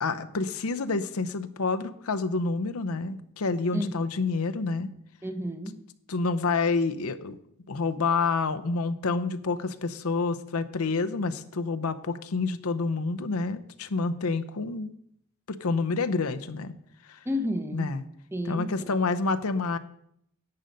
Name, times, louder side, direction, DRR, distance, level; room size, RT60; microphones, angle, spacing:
voice 1, 0.0-4.9 6.1-7.4 7.7-14.9 15.5-16.7 17.7-18.0 18.5-19.8, left 4 dB, 85° left, 10 dB, 0.7 m, -28 dB
voice 2, 5.2-5.8 17.3-18.0 18.3-18.9, left 1 dB, 10° right, 8 dB, 0.8 m, -31 dB
11.0 x 7.8 x 5.3 m, 0.72 s
head